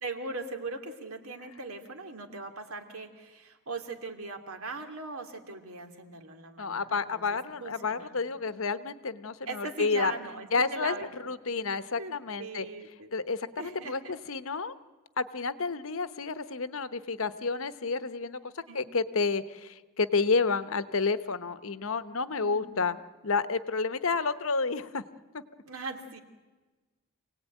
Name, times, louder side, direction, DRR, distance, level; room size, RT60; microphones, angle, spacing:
voice 1, 0.0-8.1 9.5-11.4 11.9-12.1 12.4-13.1 13.6-14.2 18.7-18.8 22.4-22.9 25.6-26.2, right 3 dB, 75° right, 6 dB, 2.4 m, -40 dB
voice 2, 6.6-10.1 10.5-10.9 11.2-12.7 13.1-14.7 15.2-23.0 23.2-25.0 25.3-25.4, left 4 dB, 65° left, 13 dB, 1.0 m, -30 dB
27.0 x 18.0 x 9.2 m, 1.3 s
head